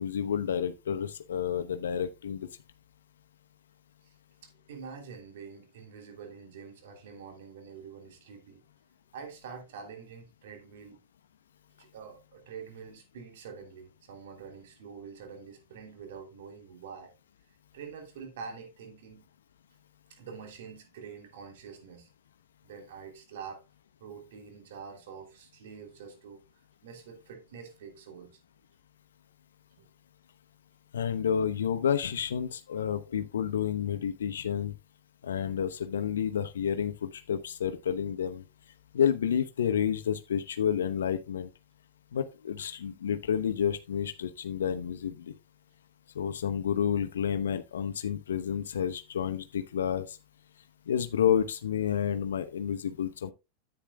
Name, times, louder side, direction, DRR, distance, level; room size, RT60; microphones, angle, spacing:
voice 1, 0.0-2.5 30.9-34.7 35.2-38.4 38.9-41.5 42.1-45.3 46.1-50.2 50.9-53.3, left 8 dB, 85° left, 0.8 m, -30 dB
voice 2, 4.4-8.6 9.1-11.0 11.8-17.1 17.5-19.3 20.1-22.1 22.6-23.6 24.0-26.4 26.8-28.4 29.8-29.9, right 6 dB, 75° right, 2.9 m, -46 dB
10.0 x 8.8 x 2.3 m
hypercardioid pair, 100°, 0 cm